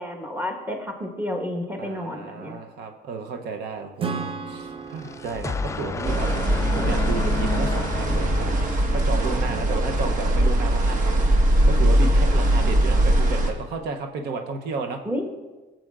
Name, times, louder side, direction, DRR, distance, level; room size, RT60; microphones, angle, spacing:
voice 1, 0.0-2.6 15.0-15.3, left 1 dB, 10° right, 2 dB, 1.3 m, -30 dB
voice 2, 1.8-8.6 8.9-15.0, right 4 dB, 75° right, 5 dB, 0.8 m, -33 dB
Acoustic guitar / Strum, 4.0-7.6, right 5 dB, 35° right, 0.6 m, -35 dB
sound 1, 4.7-9.3, left 4 dB, 20° left, 0.3 m, -32 dB
sound 2, 6.0-13.5, right 1 dB, 50° right, 1.3 m, -21 dB
15.0 x 7.6 x 2.4 m, 1.2 s
cardioid pair, 110°, 17 cm